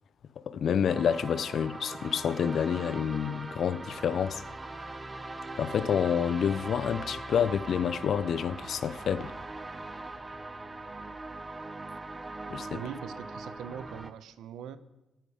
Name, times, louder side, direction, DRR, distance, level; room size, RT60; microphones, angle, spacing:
voice 1, 0.4-4.4 5.6-9.3 12.5-12.8, left 8 dB, 60° left, 0.6 m, -28 dB
sound 1, 0.9-14.1, right 2 dB, 20° right, 1.0 m, -41 dB
voice 2, 12.7-14.8, right 9 dB, 80° right, 1.0 m, -41 dB
24.0 x 9.2 x 5.1 m
cardioid pair, 90°, 0 cm